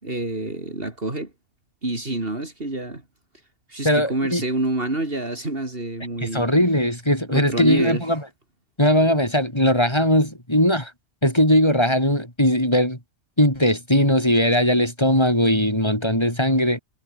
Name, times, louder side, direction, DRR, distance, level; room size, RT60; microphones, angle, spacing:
voice 1, 0.0-1.3 1.8-3.0 3.7-6.4 7.3-8.0, right 2 dB, 50° right, 4.2 m, -27 dB
voice 2, 3.8-4.4 6.2-8.2 8.8-10.9 11.2-13.0 13.4-16.8, equal, 20° left, 7.3 m, -19 dB
omnidirectional pair, 1.2 m